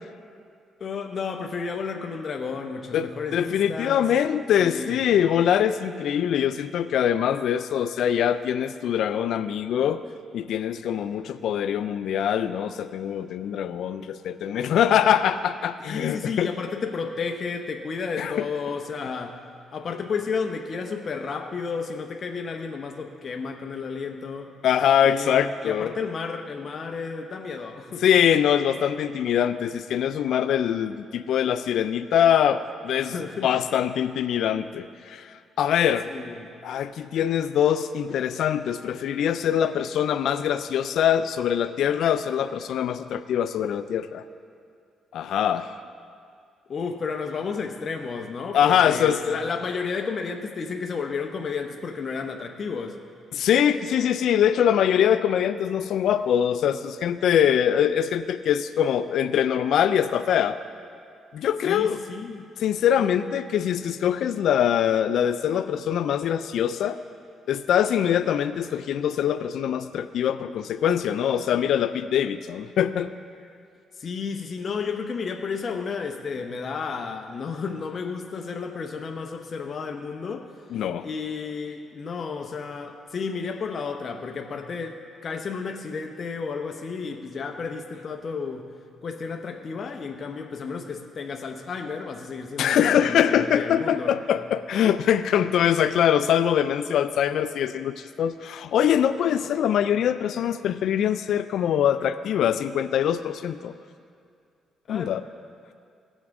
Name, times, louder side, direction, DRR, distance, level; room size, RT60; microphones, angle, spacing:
voice 1, 0.8-4.1 4.6-5.0 15.8-19.4 19.7-24.5 25.0-28.0 33.0-33.5 36.1-36.5 46.7-53.0 61.6-62.5 63.0-63.1 74.0-80.5 81.0-88.7 89.0-94.1 104.9-105.1, left 5 dB, 50° left, 3 dB, 0.7 m, -32 dB
voice 2, 2.9-10.0 10.3-16.5 18.2-18.5 24.6-25.9 28.0-33.1 33.4-36.1 36.6-44.2 45.1-45.7 48.5-49.2 53.3-60.6 61.3-62.0 62.6-67.0 67.5-73.1 80.7-81.1 92.6-103.7 104.9-105.2, left 9 dB, 75° left, 12 dB, 0.3 m, -23 dB
18.0 x 7.2 x 3.6 m, 2.3 s
cardioid pair, 90°, 0 cm